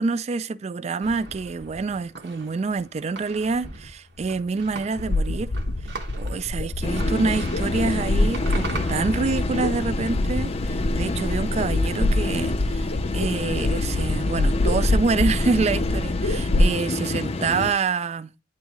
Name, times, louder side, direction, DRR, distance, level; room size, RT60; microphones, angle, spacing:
voice 1, 0.0-5.5 6.2-18.3, right 4 dB, 35° right, 0.3 m, -27 dB
sound 1, 1.0-16.2, right 3 dB, 65° right, 1.2 m, -42 dB
sound 2, 5.0-16.7, left 2 dB, 75° left, 0.6 m, -25 dB
sound 3, 6.8-17.7, left 2 dB, 35° left, 0.4 m, -29 dB
9.6 x 3.6 x 3.0 m
head